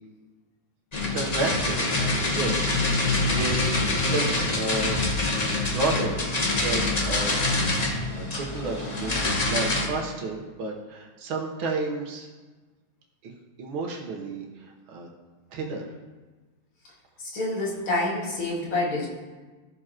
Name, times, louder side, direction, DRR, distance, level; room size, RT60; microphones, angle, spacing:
sound 1, 0.9-9.9, left 2 dB, 45° left, 0.5 m, -25 dB
voice 1, 1.1-5.0 5.6-6.3 6.6-12.3 13.2-13.3 13.6-15.1 15.5-15.9, right 3 dB, 75° right, -1 dB, 1.9 m, -32 dB
voice 2, 17.2-19.1, left 2 dB, 70° left, -4 dB, 2.8 m, -27 dB
14.5 x 7.0 x 2.9 m, 1.3 s
omnidirectional pair, 2.3 m